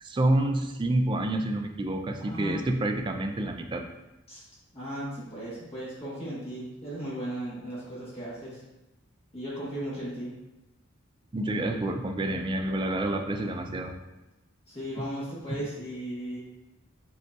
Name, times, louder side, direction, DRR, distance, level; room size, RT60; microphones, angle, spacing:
voice 1, 0.0-3.9 11.3-14.0 15.0-15.1 15.5-15.6, right 1 dB, 25° right, 4 dB, 0.3 m, -28 dB
voice 2, 2.2-3.0 4.3-4.4 4.7-8.6 9.3-10.3 14.7-16.4, right 1 dB, 30° left, -9 dB, 1.2 m, -36 dB
5.0 x 3.8 x 2.3 m, 0.99 s
head